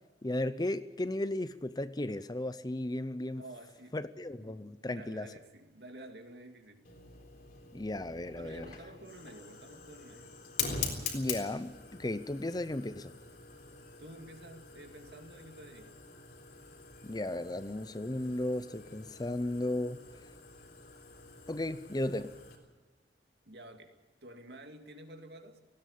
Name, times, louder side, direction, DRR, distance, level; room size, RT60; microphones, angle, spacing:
voice 1, 0.2-3.4 3.9-5.3 7.7-8.7 11.1-13.1 17.0-20.0 21.5-22.4, left 1 dB, 20° left, 13 dB, 0.7 m, -35 dB
voice 2, 3.4-4.0 4.4-4.5 4.9-6.9 8.3-10.4 14.0-16.0 23.5-23.9 24.2-25.6, right 1 dB, 65° right, 5 dB, 2.5 m, -50 dB
Fire, 6.8-22.6, left 5 dB, 55° left, 3.8 m, -44 dB
19.0 x 16.5 x 8.4 m, 1.3 s
head